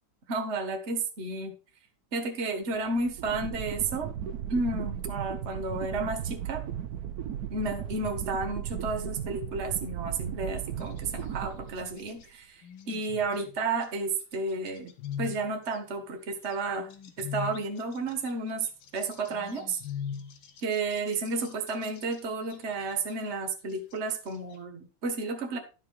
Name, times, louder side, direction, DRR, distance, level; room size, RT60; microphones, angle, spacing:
voice 1, 0.3-1.5 2.1-4.1 4.5-6.6 7.5-12.6 12.9-14.9 15.2-16.9 17.2-18.7 18.9-19.8 20.6-25.6, right 3 dB, 35° right, 5 dB, 1.6 m, -32 dB
sound 1, 2.7-12.2, right 10 dB, 60° right, 1.1 m, -36 dB
sound 2, 10.8-11.4 11.8-12.3 12.6-13.9 14.3-15.8 16.4-22.2 22.5-23.1 23.7-24.6, left 8 dB, 90° left, 2.1 m, -41 dB
11.5 x 5.7 x 4.6 m, 0.34 s
omnidirectional pair, 2.2 m